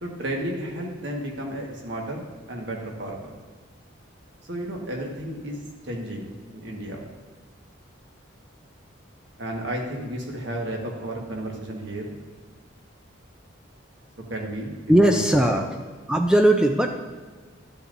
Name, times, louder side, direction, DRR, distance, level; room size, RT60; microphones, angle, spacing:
voice 1, 0.0-3.3 4.5-5.6 5.8-7.0 9.4-12.2 14.3-15.7, right 1 dB, 65° right, 0 dB, 1.4 m, -32 dB
voice 2, 14.9-15.7 16.1-17.0, right 1 dB, 5° right, 4 dB, 0.3 m, -18 dB
12.0 x 6.9 x 2.6 m, 1.4 s
head